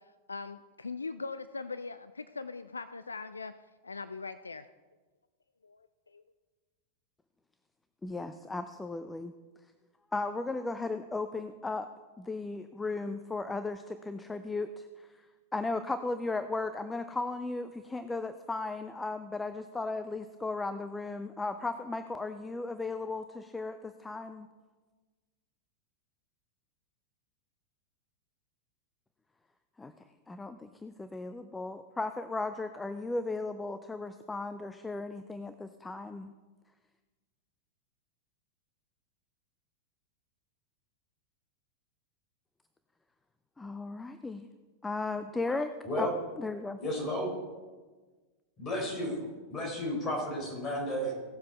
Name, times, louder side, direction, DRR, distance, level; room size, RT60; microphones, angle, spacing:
voice 1, 0.3-3.5 3.8-4.6 5.6-5.8 6.1-6.2, left 4 dB, 75° left, 13 dB, 0.3 m, -40 dB
voice 2, 8.0-9.3 10.1-11.9 12.2-15.2 15.5-24.5 29.8-29.9 30.3-36.3 43.6-44.5 44.8-46.8, left 3 dB, 10° left, 10 dB, 0.5 m, -36 dB
voice 3, 46.8-47.4 48.6-51.1, equal, 25° left, 1 dB, 3.8 m, -33 dB
17.0 x 7.5 x 4.5 m, 1.3 s
figure-of-eight pair, 90°, 0 cm